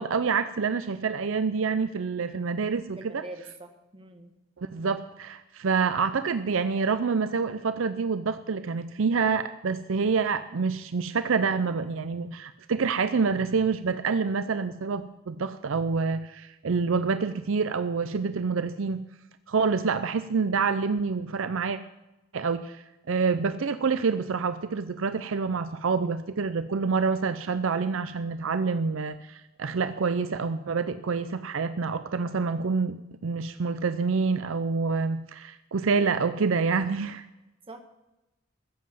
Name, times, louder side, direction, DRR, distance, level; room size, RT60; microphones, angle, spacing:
voice 1, 0.0-3.2 4.6-19.0 19.5-21.8 22.3-37.3, right 5 dB, 70° right, 12 dB, 0.5 m, -27 dB
voice 2, 3.0-4.3 37.7-37.8, right 2 dB, 25° right, 5 dB, 1.4 m, -43 dB
15.0 x 7.6 x 7.5 m, 0.98 s
head